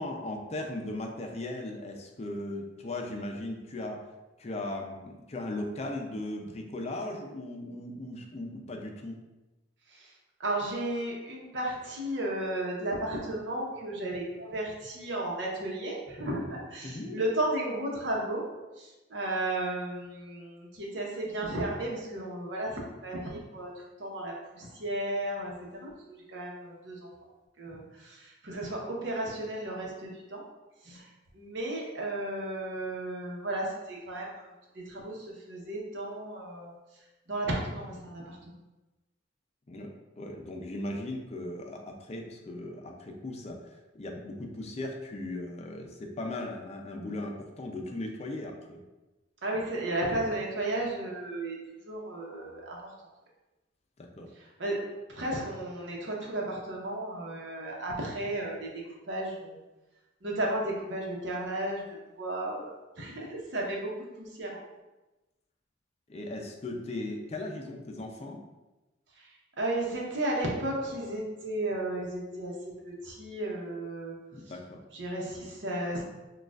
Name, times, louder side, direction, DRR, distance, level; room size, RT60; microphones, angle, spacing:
voice 1, 0.0-4.0 4.4-9.2 16.8-17.2 39.7-48.8 54.0-54.3 66.1-68.4 74.3-74.8, left 1 dB, 35° left, 2 dB, 0.4 m, -38 dB
voice 2, 10.4-18.4 18.8-23.7 24.0-27.1 27.6-30.4 30.8-31.1 31.3-34.5 34.7-36.7 37.3-38.4 49.4-51.6 51.9-52.9 54.6-59.6 60.2-64.6 69.2-69.3 69.6-74.2 74.9-76.0, right 1 dB, 75° right, -2 dB, 0.9 m, -34 dB
6.3 x 2.4 x 2.4 m, 1.1 s
head